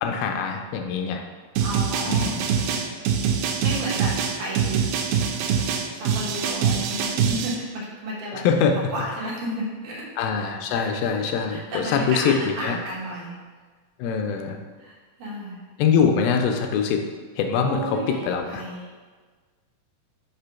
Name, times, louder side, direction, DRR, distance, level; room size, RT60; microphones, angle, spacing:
voice 1, 0.0-1.2 2.1-2.4 8.3-8.9 10.2-12.8 14.0-14.6 15.8-17.0 17.4-18.0 18.3-18.6, left 6 dB, 90° left, 4 dB, 2.4 m, -23 dB
voice 2, 1.5-2.4 2.7-3.0 3.6-4.1 4.4-4.8 6.0-8.4 8.9-10.1 10.7-10.9 11.3-13.3 14.8-15.7 17.6-18.9, equal, 65° right, -4 dB, 2.4 m, -33 dB
sound 1, 1.6-7.6, right 7 dB, 90° right, 2.4 m, -24 dB
5.9 x 3.4 x 5.7 m, 1.4 s
omnidirectional pair, 4.2 m